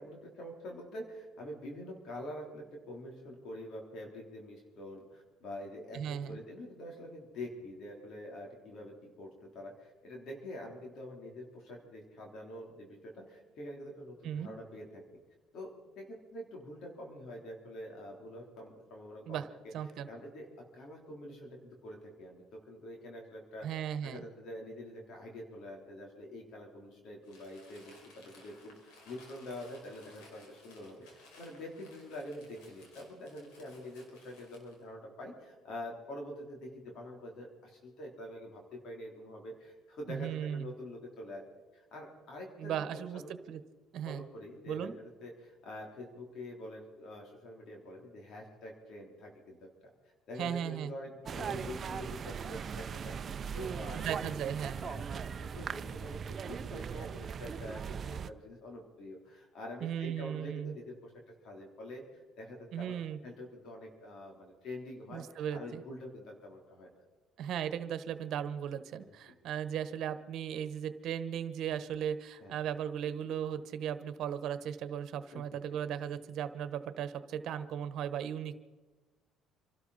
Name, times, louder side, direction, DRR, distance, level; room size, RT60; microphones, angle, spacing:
voice 1, 0.0-15.0 15.5-19.4 20.1-20.5 20.7-41.4 41.7-43.3 44.1-49.7 50.3-54.4 54.7-61.1 61.4-63.0 63.2-66.9 69.1-69.3 72.4-72.6 75.3-75.6, left 1 dB, 65° left, 0 dB, 3.6 m, -46 dB
voice 2, 5.9-6.4 14.2-14.5 19.3-19.5 19.7-20.1 23.6-24.2 40.1-40.7 42.6-43.2 43.5-43.6 43.9-44.2 44.7-44.9 50.4-50.9 53.9-54.8 59.8-60.7 62.7-63.2 65.1-65.8 67.4-78.6, right 9 dB, 65° right, 11 dB, 1.2 m, -37 dB
Crumpling crinkling, 27.2-34.8, left 2 dB, 80° left, 4.8 m, -59 dB
sound 1, 51.3-58.3, right 7 dB, 45° right, 0.6 m, -39 dB
27.5 x 12.5 x 4.2 m, 1.2 s
supercardioid pair, 80°, 0 cm